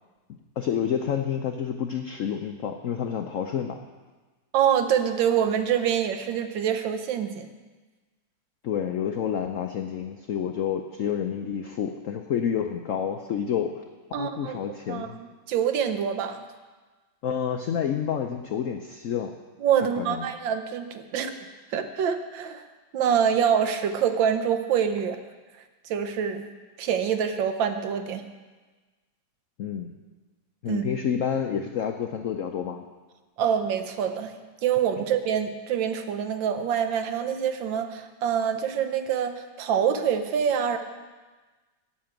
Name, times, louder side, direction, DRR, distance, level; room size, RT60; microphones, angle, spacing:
voice 1, 0.3-3.8 8.6-13.8 14.2-15.2 17.2-19.3 20.0-20.3 29.6-29.9 30.6-32.9 35.0-35.1, left 8 dB, 85° left, 5 dB, 0.7 m, -29 dB
voice 2, 4.5-7.5 14.1-16.4 19.6-21.3 21.7-22.6 22.9-25.2 25.8-26.4 26.8-28.2 30.7-30.8 33.4-34.3 34.6-40.8, right 8 dB, 75° right, 8 dB, 1.5 m, -25 dB
8.5 x 7.5 x 8.8 m, 1.3 s
omnidirectional pair, 2.1 m